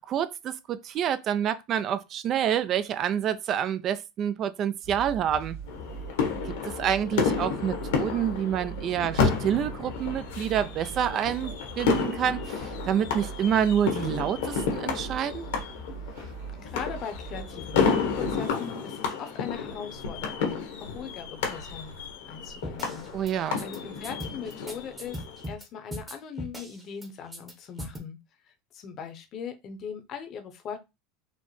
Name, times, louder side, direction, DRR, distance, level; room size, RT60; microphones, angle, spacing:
voice 1, 0.0-5.6 6.4-15.5 23.1-23.6, right 9 dB, 45° right, 0.3 m, -28 dB
sound 1, 4.8-18.5, right 4 dB, 90° right, 1.3 m, -41 dB
sound 2, 5.7-25.5, left 5 dB, 80° left, 1.0 m, -31 dB
voice 2, 16.2-21.9 22.2-28.2 28.4-30.8, left 7 dB, 45° left, 0.7 m, -40 dB
sound 3, 22.6-23.3 23.6-23.8 24.0-25.6 25.9-27.1 27.3-27.5 27.8-28.0, equal, 15° right, 0.9 m, -38 dB
4.0 x 2.0 x 3.1 m
supercardioid pair, 105°, 0 cm